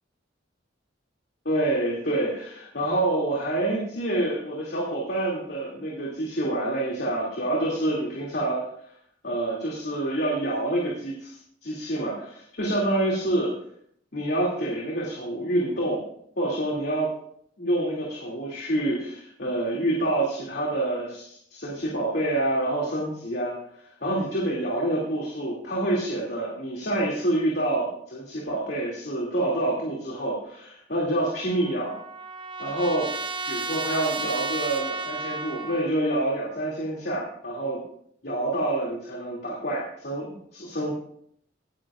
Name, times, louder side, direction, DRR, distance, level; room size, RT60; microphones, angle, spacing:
voice 1, 1.4-8.7 9.2-13.5 14.1-16.0 16.4-17.1 17.6-31.9 32.6-33.1 33.5-37.8 38.2-40.9, right 1 dB, 60° left, -3 dB, 2.7 m, -27 dB
Trumpet, 31.2-35.9, right 3 dB, 25° right, 0.9 m, -33 dB
17.5 x 10.5 x 2.5 m, 0.66 s
head